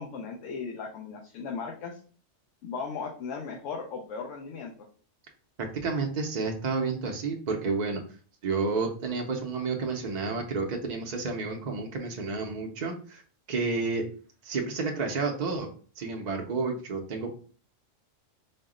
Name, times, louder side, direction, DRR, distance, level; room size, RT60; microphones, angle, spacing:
voice 1, 0.0-2.0 2.6-4.7, left 5 dB, 75° left, 0 dB, 1.0 m, -37 dB
voice 2, 5.6-8.0 8.4-13.2 13.5-14.1 14.4-15.7 16.0-17.3, right 4 dB, 55° right, 2 dB, 0.5 m, -30 dB
4.2 x 2.0 x 3.6 m, 0.41 s
omnidirectional pair, 1.3 m